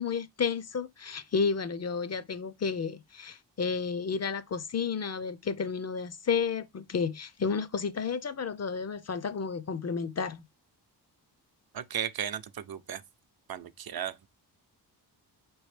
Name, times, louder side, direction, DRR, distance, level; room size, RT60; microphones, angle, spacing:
voice 1, 0.0-10.4, left 5 dB, 40° left, 0.5 m, -31 dB
voice 2, 11.7-13.0 13.5-14.3, right 9 dB, 60° right, 0.6 m, -35 dB
4.9 x 3.1 x 3.2 m
cardioid pair, 70°, 41 cm